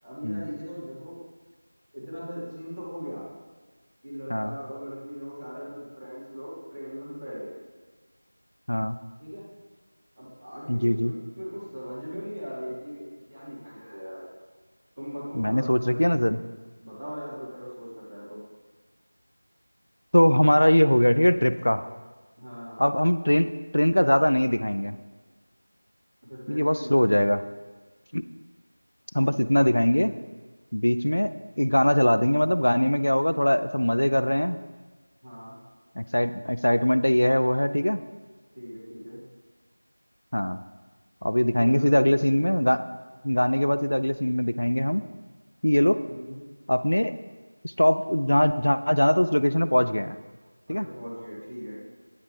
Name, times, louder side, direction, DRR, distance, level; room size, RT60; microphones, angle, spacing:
voice 1, 0.0-1.2 1.9-3.2 4.0-7.5 9.2-9.4 10.1-11.1 11.4-14.3 15.0-15.7 16.2-16.4 16.8-18.4 22.4-22.8 26.3-27.2 29.1-29.5 35.2-35.6 38.5-39.2 41.6-42.4 46.0-46.4 50.7-51.7, equal, 25° right, -10 dB, 2.7 m, -38 dB
voice 2, 10.7-11.1 15.3-16.4 20.1-21.9 22.8-23.5 23.7-25.0 26.5-27.4 28.1-28.2 29.1-30.1 30.7-31.3 31.6-34.6 36.0-38.0 40.3-40.6 41.2-42.8 43.2-45.0 45.6-46.0 46.7-47.1 47.6-50.2 50.7-50.9, equal, 60° left, 12 dB, 0.4 m, -22 dB
9.2 x 7.3 x 3.4 m, 1.4 s
figure-of-eight pair, 175°, 0 cm